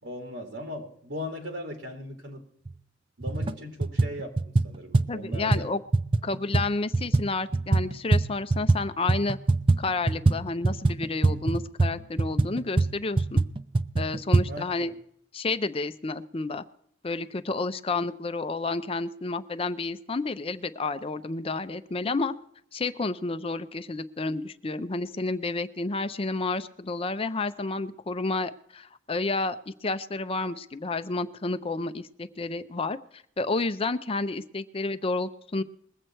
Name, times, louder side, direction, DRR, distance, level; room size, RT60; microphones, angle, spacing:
voice 1, 0.0-2.5 3.2-5.6 14.5-14.9, left 1 dB, 75° right, 2 dB, 2.4 m, -38 dB
sound 1, 2.7-2.8 3.2-3.5 3.8-8.8 9.1-14.5, right 3 dB, 25° right, 0.4 m, -24 dB
voice 2, 5.1-5.8 6.2-9.4 9.8-13.4 14.0-14.9 15.3-16.6 17.0-22.3 22.7-35.6, left 3 dB, 30° left, 11 dB, 0.5 m, -30 dB
21.0 x 7.9 x 4.4 m, 0.69 s
head